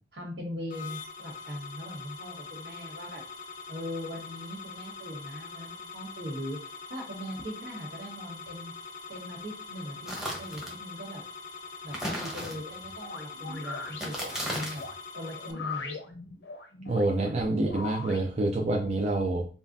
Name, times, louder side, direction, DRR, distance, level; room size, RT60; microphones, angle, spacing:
voice 1, 0.1-3.2 3.7-6.6 6.9-8.7 9.1-11.2 11.8-14.8 15.1-16.0, left 1 dB, 75° right, -2 dB, 1.8 m, -40 dB
sound 1, 0.7-15.5, left 4 dB, 45° left, 0.5 m, -43 dB
sound 2, 10.1-10.8 11.9-12.9 13.9-14.9, equal, 5° right, 0.9 m, -35 dB
sound 3, 13.0-18.3, left 4 dB, 85° left, 0.7 m, -40 dB
voice 2, 16.9-19.5, right 2 dB, 40° right, 1 dB, 0.4 m, -27 dB
5.4 x 2.3 x 2.6 m, 0.38 s
head